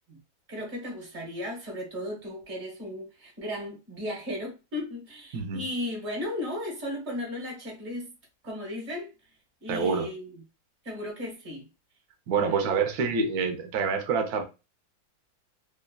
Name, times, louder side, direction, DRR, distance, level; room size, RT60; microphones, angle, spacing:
voice 1, 0.5-8.1 8.4-9.1 9.6-10.4 10.8-11.7 12.3-12.8, left 1 dB, 45° right, 1.1 m, -35 dB
voice 2, 5.3-5.7 9.7-10.1 12.3-14.4, right 5 dB, 70° right, 1.0 m, -27 dB
3.2 x 2.1 x 2.2 m
omnidirectional pair, 2.1 m